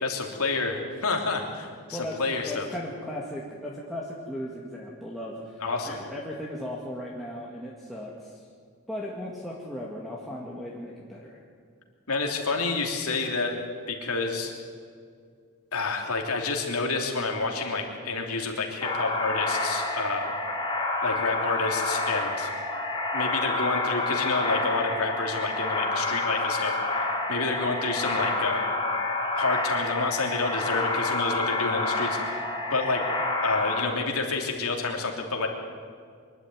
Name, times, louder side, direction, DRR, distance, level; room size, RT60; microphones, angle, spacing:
voice 1, 0.0-2.7 5.6-6.0 12.1-13.6 13.9-14.5 15.7-20.3 21.0-22.5 23.1-28.7 29.4-33.1 33.4-35.5, left 3 dB, 75° left, 2 dB, 3.2 m, -29 dB
voice 2, 2.5-8.4 8.9-11.4, left 1 dB, ahead, -5 dB, 2.0 m, -37 dB
sound 1, 18.8-33.8, left 2 dB, 20° left, 3.6 m, -28 dB
23.5 x 12.0 x 9.4 m, 2.2 s
head